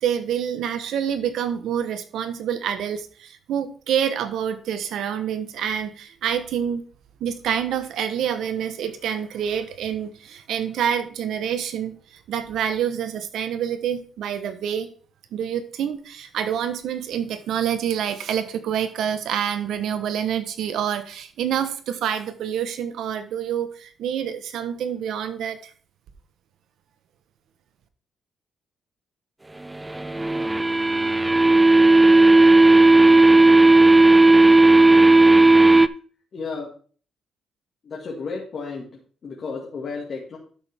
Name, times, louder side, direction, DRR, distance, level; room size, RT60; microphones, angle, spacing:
voice 1, 0.0-6.8 7.2-14.9 15.3-25.7, right 9 dB, 75° right, 10 dB, 1.2 m, -27 dB
sound 1, 29.9-35.9, right 2 dB, 15° right, 0.4 m, -14 dB
voice 2, 36.3-36.7 37.8-38.8 39.2-40.4, left 4 dB, 50° left, -2 dB, 2.3 m, -32 dB
12.0 x 6.3 x 3.6 m, 0.43 s
cardioid pair, 90°, 0 cm